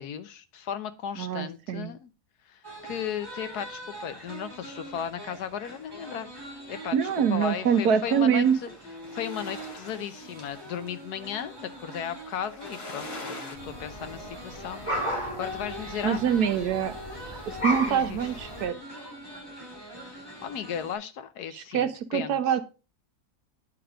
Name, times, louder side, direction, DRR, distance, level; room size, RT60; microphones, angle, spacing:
voice 1, 0.0-2.1 2.5-6.3 6.7-8.7 9.1-14.8 15.1-16.2 17.3-17.5 17.9-18.3 19.8-22.6, left 8 dB, 80° left, 11 dB, 1.4 m, -36 dB
voice 2, 1.2-1.9 6.9-8.6 16.0-16.9 17.5-18.7 21.5-22.6, right 7 dB, 75° right, 10 dB, 1.4 m, -25 dB
sound 1, 2.6-20.9, equal, 15° right, 3.4 m, -43 dB
sound 2, 8.5-13.6, left 3 dB, 55° left, 2.3 m, -44 dB
sound 3, 13.6-18.7, equal, 20° left, 3.1 m, -35 dB
10.5 x 4.6 x 4.9 m, 0.31 s
omnidirectional pair, 1.7 m